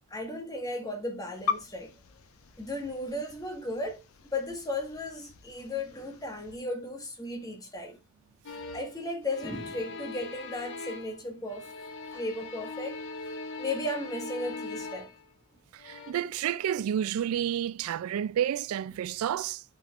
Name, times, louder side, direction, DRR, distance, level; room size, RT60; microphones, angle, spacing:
voice 1, 0.1-1.9 2.6-4.0 4.3-8.0 8.7-11.7 12.1-13.0 13.6-15.1, left 1 dB, 15° left, 1.5 m, -35 dB
sound 1, 1.3-6.6, left 5 dB, 80° left, 0.7 m, -40 dB
sound 2, 8.4-9.0 9.3-11.2 11.5-15.3 15.8-16.1, left 3 dB, 60° left, 1.3 m, -41 dB
voice 2, 15.7-19.6, right 10 dB, 80° right, 0.3 m, -30 dB
12.5 x 6.1 x 2.4 m
head